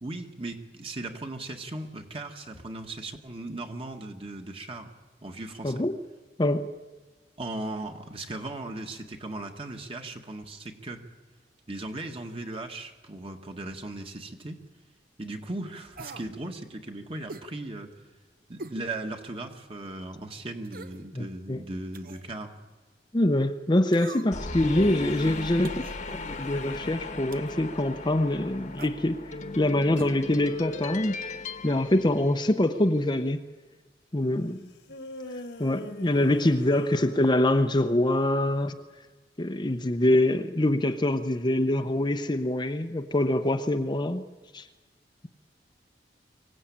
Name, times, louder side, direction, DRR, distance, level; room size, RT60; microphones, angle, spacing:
voice 1, 0.0-4.9 5.2-5.8 7.4-11.0 11.7-14.6 15.2-17.9 18.5-22.6, right 2 dB, 35° right, 1.9 m, -37 dB
voice 2, 5.6-6.0 6.4-6.7 21.2-21.6 23.1-25.8 26.1-29.2 29.6-31.2 31.6-33.4 34.1-34.7 35.6-38.8 39.4-44.2 44.5-44.6, left 1 dB, 25° left, 0.8 m, -24 dB
sound 1, 16.0-16.3 17.3-17.5 18.6-18.8 19.3-19.4 20.6-21.0 21.9-22.3 23.9-24.5 25.6-26.0 27.3-27.6 28.7-29.0 29.9-30.1 30.4-30.5, right 3 dB, 55° right, 1.0 m, -43 dB
sound 2, 24.3-32.9, left 3 dB, 45° left, 1.3 m, -38 dB
sound 3, 24.5-27.7 34.9-37.8, left 1 dB, 70° left, 1.8 m, -43 dB
24.5 x 16.5 x 8.7 m
head